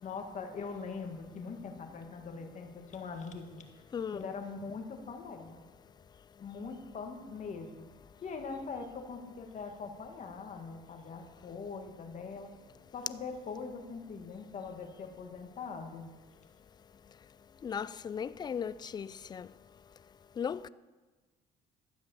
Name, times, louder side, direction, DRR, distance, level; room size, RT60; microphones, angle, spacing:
voice 1, 0.0-3.7 4.1-5.7 6.4-7.9 8.2-12.5 12.9-16.1, left 4 dB, 45° left, 1.8 m, -42 dB
voice 2, 3.9-4.3 17.6-19.5 20.4-20.7, left 7 dB, 25° left, 0.4 m, -37 dB
12.5 x 8.2 x 7.0 m
cardioid pair, 110°, 17 cm